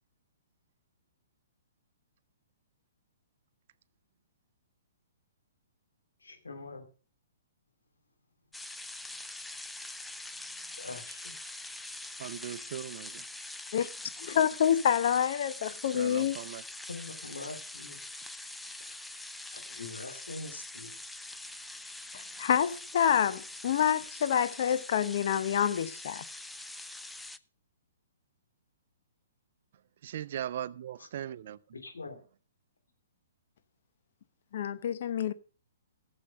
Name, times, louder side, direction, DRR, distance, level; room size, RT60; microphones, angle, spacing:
voice 1, 6.2-6.9 10.6-11.4 16.9-18.0 18.8-19.0 19.5-21.0 31.0-31.1 31.7-32.2, left 3 dB, 85° left, 2.8 m, -44 dB
sound 1, 8.5-27.4, left 2 dB, 5° left, 0.5 m, -44 dB
voice 2, 12.2-13.2 15.9-16.6 30.0-31.6, right 10 dB, 55° right, 0.6 m, -39 dB
voice 3, 14.2-16.4 22.1-26.2 34.5-35.3, left 9 dB, 55° left, 0.8 m, -27 dB
15.0 x 7.3 x 5.2 m
hypercardioid pair, 125°, 0 cm